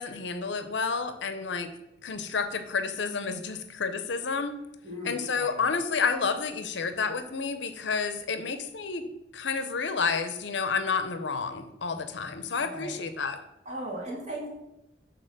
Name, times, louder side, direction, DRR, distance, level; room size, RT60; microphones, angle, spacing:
voice 1, 0.0-1.7 2.0-4.6 5.0-9.0 9.3-13.4, left 5 dB, 70° left, 9 dB, 0.6 m, -30 dB
voice 2, 4.8-5.6 12.6-13.0 13.6-14.5, right 1 dB, 35° right, -5 dB, 2.5 m, -37 dB
6.8 x 4.0 x 6.5 m, 0.92 s
head